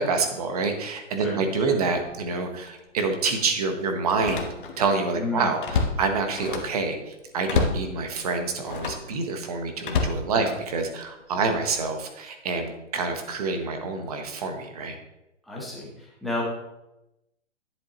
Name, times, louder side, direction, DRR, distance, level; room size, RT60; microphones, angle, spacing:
voice 1, 0.0-4.5 4.8-15.0, right 4 dB, 30° right, 5 dB, 1.1 m, -27 dB
voice 2, 1.2-1.8 5.1-5.5 10.3-10.5 11.4-11.5 15.4-16.4, left 2 dB, ahead, -6 dB, 0.8 m, -32 dB
Slam, 2.0-2.2 2.7-2.8 4.1-4.9 5.3-6.8 7.4-7.9 8.6-9.1 9.8-10.9 11.5-11.8, left 4 dB, 45° left, 1.2 m, -28 dB
11.0 x 7.5 x 3.0 m, 0.92 s
hypercardioid pair, 160°, 37 cm